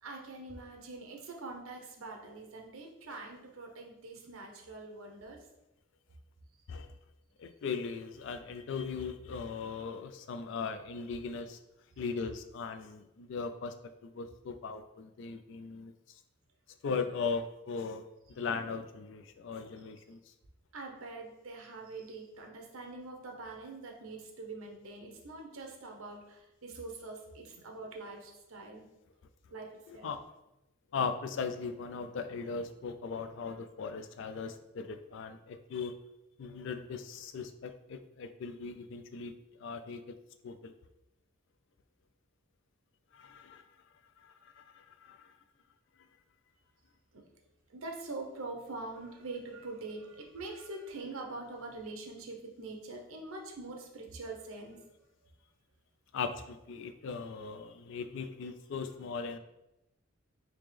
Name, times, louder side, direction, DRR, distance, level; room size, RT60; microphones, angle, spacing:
voice 1, 0.0-5.4 20.7-28.9 29.5-30.1 47.1-47.2 47.7-54.8, right 3 dB, 75° right, 2 dB, 0.8 m, -44 dB
voice 2, 7.4-11.6 12.0-13.7 14.0-15.9 16.8-18.1 18.3-20.2 29.9-30.2 30.9-35.9 36.4-39.3 39.6-40.0 40.4-40.7 43.1-43.6 44.2-45.4 56.1-59.4, left 5 dB, 60° left, 9 dB, 0.3 m, -38 dB
3.5 x 2.9 x 3.3 m, 0.90 s
head